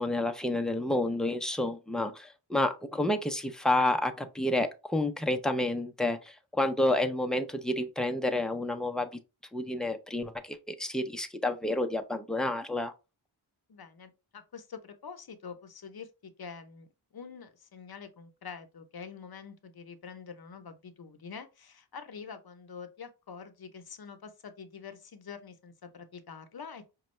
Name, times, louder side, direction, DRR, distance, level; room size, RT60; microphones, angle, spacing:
voice 1, 0.0-9.1 9.5-12.9, left 1 dB, ahead, 0.5 m, -29 dB
voice 2, 13.7-27.0, left 6 dB, 55° left, 0.7 m, -46 dB
5.2 x 2.2 x 3.1 m
wide cardioid pair, 75°, 45 cm